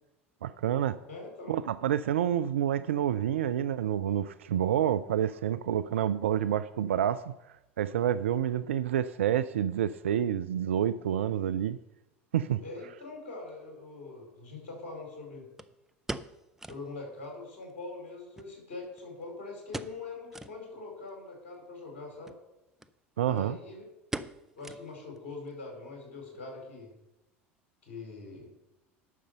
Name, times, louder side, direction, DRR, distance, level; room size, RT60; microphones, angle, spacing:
voice 1, 0.4-1.0 1.5-7.3 7.8-11.8 12.3-12.6 23.2-23.6, right 10 dB, 70° right, 14 dB, 0.4 m, -28 dB
voice 2, 1.1-1.6 12.6-15.5 16.7-22.4 23.2-23.9 24.6-26.9 27.8-28.5, left 3 dB, 60° left, 0 dB, 4.9 m, -43 dB
sound 1, 13.5-13.6 15.6-16.9 17.2-17.3 17.6-17.7 18.4-19.2 19.7-20.1 20.3-20.6 21.1-21.2 22.1-22.4 22.8-22.9 23.2-23.6 24.1-25.2 25.5-25.6 26.2-26.5 26.8-26.9, right 1 dB, 5° right, 0.6 m, -41 dB
11.0 x 6.5 x 6.7 m, 0.93 s
figure-of-eight pair, 70°, 7 cm